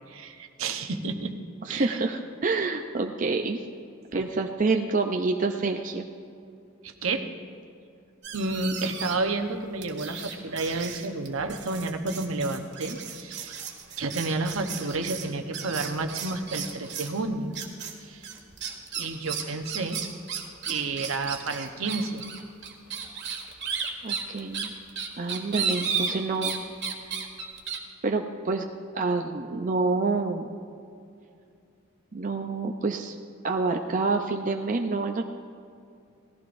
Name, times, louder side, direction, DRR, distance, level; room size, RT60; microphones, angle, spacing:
voice 1, 0.1-1.3 1.7-2.0 4.1-4.2 6.8-7.3 8.3-13.6 14.0-17.5 17.9-18.3 19.0-20.0 20.7-22.2, right 3 dB, 75° right, 5 dB, 0.9 m, -30 dB
voice 2, 1.6-3.6 4.1-6.1 24.0-24.7 25.2-26.6 28.0-28.6 28.9-30.5 32.1-33.1 33.4-35.2, right 3 dB, 40° right, 3 dB, 0.5 m, -27 dB
sound 1, 8.2-9.3 9.8-17.2 17.5-17.9 18.2-26.6 26.8-27.8, right 6 dB, 55° right, 1.6 m, -34 dB
18.0 x 14.5 x 2.6 m, 2.4 s
head